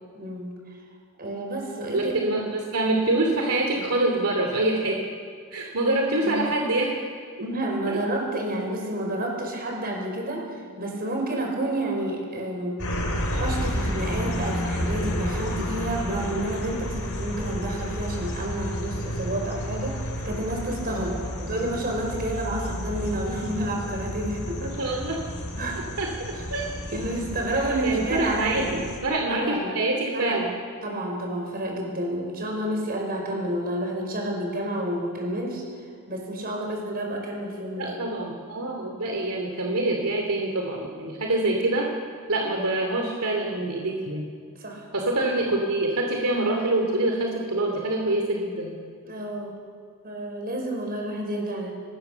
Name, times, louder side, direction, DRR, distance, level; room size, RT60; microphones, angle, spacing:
voice 1, 0.1-0.5 1.2-2.3 3.7-3.9 6.2-6.4 7.4-10.5 10.8-12.8 13.3-21.1 21.5-25.0 25.6-25.9 26.3-26.5 26.9-28.8 29.3-29.8 30.1-30.4 30.8-35.6 36.1-38.0 44.6-44.8 49.0-49.5 50.0-51.7, right 1 dB, 45° right, 1 dB, 5.6 m, -30 dB
voice 2, 1.9-5.0 5.5-6.9 7.9-8.0 20.9-21.5 24.6-25.2 26.0-26.1 26.5-26.7 27.7-30.5 37.8-41.9 42.3-44.3 44.9-48.7, right 2 dB, 75° right, 1 dB, 2.7 m, -25 dB
sound 1, 12.8-29.0, equal, 70° left, 4.2 m, -31 dB
23.5 x 19.5 x 6.9 m, 2.1 s
head